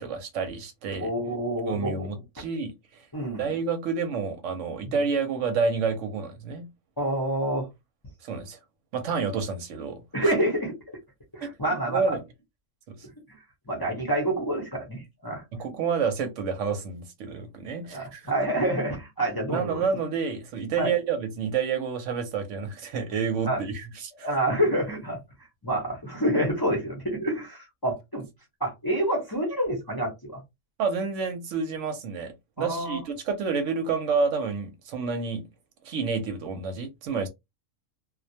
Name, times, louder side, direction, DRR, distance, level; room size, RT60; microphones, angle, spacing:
voice 1, 0.0-1.1 1.7-3.0 3.4-6.7 8.2-8.6 8.9-10.3 11.4-11.5 11.9-12.2 12.9-13.1 15.5-18.3 19.5-24.3 30.8-35.4 35.8-37.3, right 5 dB, 70° right, 0.9 m, -29 dB
voice 2, 1.0-2.1 3.1-3.5 4.8-5.0 7.0-7.7 10.1-10.7 11.3-12.2 13.7-15.4 17.9-19.8 20.8-20.9 23.5-23.6 24.2-25.2 25.6-28.2 28.6-30.4 32.6-33.0, right 1 dB, 25° left, 0.6 m, -27 dB
2.3 x 2.1 x 2.7 m
omnidirectional pair, 1.4 m